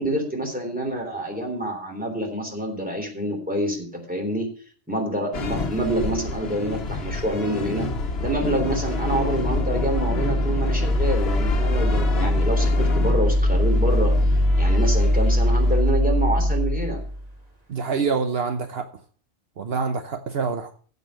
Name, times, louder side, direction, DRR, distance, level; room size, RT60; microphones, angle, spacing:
voice 1, 0.0-4.5 4.9-7.9 8.2-14.1 14.6-17.0, right 1 dB, 10° right, 3.5 m, -27 dB
sound 1, 5.3-16.0, left 3 dB, 70° left, 1.4 m, -30 dB
sound 2, 8.1-17.2, left 1 dB, 40° right, 2.6 m, -22 dB
voice 2, 17.7-18.9 19.6-20.7, right 5 dB, 70° right, 1.1 m, -26 dB
15.0 x 5.4 x 6.3 m
omnidirectional pair, 1.1 m